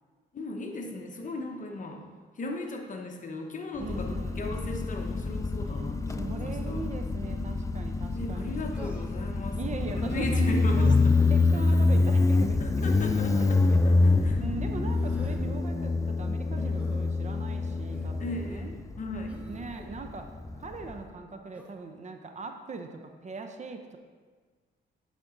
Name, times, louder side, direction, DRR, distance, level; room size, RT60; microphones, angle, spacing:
voice 1, 0.3-2.0 2.3-6.8 8.1-11.0 11.2-11.3 11.7-11.8 12.6-14.4 14.7-14.8 16.6-16.8 18.2-19.4, left 2 dB, 40° left, 3 dB, 1.0 m, -37 dB
voice 2, 3.7-4.5 5.6-8.8 9.5-10.5 10.8-11.0 11.3-13.8 14.4-18.8 19.5-20.2 20.6-24.0, right 4 dB, 35° right, 5 dB, 0.7 m, -40 dB
Motorcycle, 3.8-21.0, left 3 dB, 15° left, 0.4 m, -26 dB
Human voice, 8.7-9.3 11.0-11.3 12.8-13.2 14.8-15.4 16.8-17.0 17.9-18.2 19.3-19.9 21.5-21.8, right 1 dB, 5° right, 0.9 m, -48 dB
8.5 x 5.2 x 3.8 m, 1.5 s
cardioid pair, 90°, 20 cm